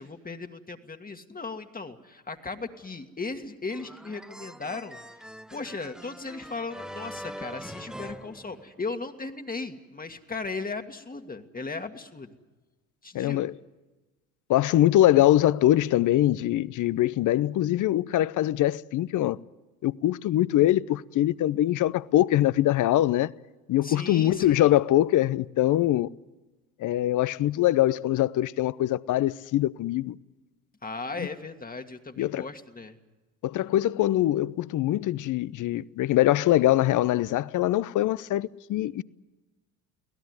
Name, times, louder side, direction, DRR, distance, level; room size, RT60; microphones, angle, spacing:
voice 1, 0.0-12.4 13.0-13.5 23.8-24.7 30.8-33.0, left 3 dB, 20° left, 1.8 m, -37 dB
sound 1, 3.7-9.1, equal, ahead, 0.9 m, -43 dB
voice 2, 13.1-13.5 14.5-19.4 19.8-23.3 23.7-26.1 26.8-30.2 32.2-32.5 33.4-39.0, left 14 dB, 45° left, 0.7 m, -23 dB
24.0 x 17.5 x 9.6 m
hypercardioid pair, 70°, 44 cm